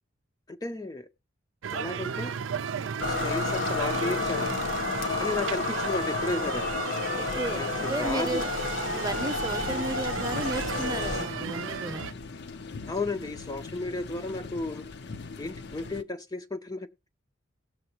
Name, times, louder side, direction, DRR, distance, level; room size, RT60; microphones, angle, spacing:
voice 1, 0.5-1.1 1.7-2.3 3.0-4.5 5.2-6.6 7.5-8.4 12.9-14.8 15.4-17.1, left 2 dB, 20° left, 0.5 m, -33 dB
sound 1, 1.6-12.1, right 7 dB, 70° right, 0.5 m, -35 dB
sound 2, 3.0-11.3, left 4 dB, 75° left, 1.7 m, -31 dB
voice 2, 7.1-8.5 8.9-12.0, right 2 dB, 20° right, 0.8 m, -34 dB
sound 3, 9.1-16.0, left 4 dB, 60° left, 0.6 m, -41 dB
18.0 x 6.7 x 2.9 m
head